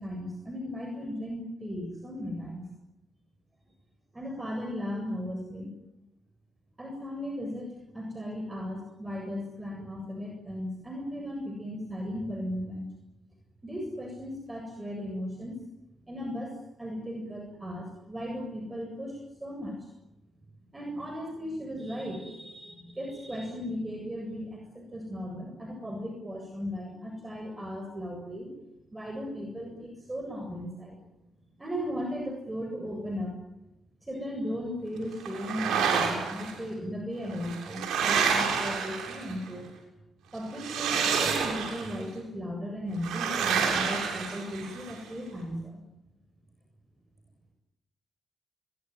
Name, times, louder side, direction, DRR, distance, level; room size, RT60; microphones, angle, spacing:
voice 1, 0.0-2.6 4.1-5.8 6.8-12.9 13.6-15.6 16.1-19.9 20.7-28.5 28.9-31.0 31.6-33.4 34.0-39.7 40.3-45.8, equal, 20° right, 2 dB, 7.6 m, -36 dB
sound 1, 35.3-36.5 37.3-39.5 40.5-42.0 43.0-44.9, right 6 dB, 85° right, 7.4 m, -28 dB
23.0 x 22.5 x 9.7 m, 0.95 s
cardioid pair, 65°, 0 cm